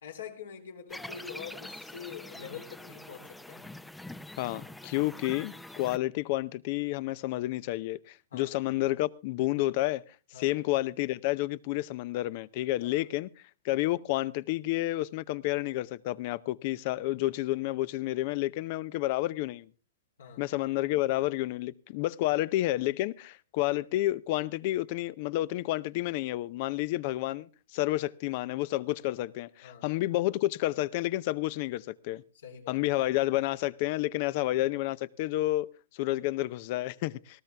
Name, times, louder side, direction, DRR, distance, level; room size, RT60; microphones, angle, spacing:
voice 1, 0.0-3.7 8.3-8.5 10.3-10.6 12.8-13.0 20.2-20.4 22.3-22.4 29.6-29.9 32.3-32.8, left 7 dB, 80° left, 3.5 m, -45 dB
sound 1, 0.9-6.0, left 1 dB, 5° left, 0.6 m, -45 dB
voice 2, 4.4-10.0 10.4-13.3 13.6-19.7 20.4-32.2 32.7-35.7 35.9-37.4, left 16 dB, 50° left, 0.6 m, -30 dB
19.0 x 13.5 x 3.4 m
hypercardioid pair, 125°, 0 cm